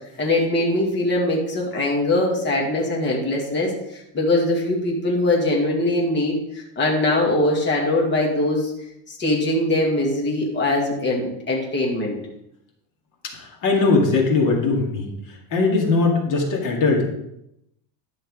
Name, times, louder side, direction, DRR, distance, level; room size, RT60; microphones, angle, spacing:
voice 1, 0.2-8.7 9.1-12.2, left 2 dB, 20° left, -2 dB, 2.3 m, -22 dB
voice 2, 13.4-15.1 15.5-17.1, left 3 dB, 40° left, 0 dB, 2.2 m, -20 dB
11.0 x 6.4 x 4.9 m, 0.81 s
cardioid pair, 165°, 48 cm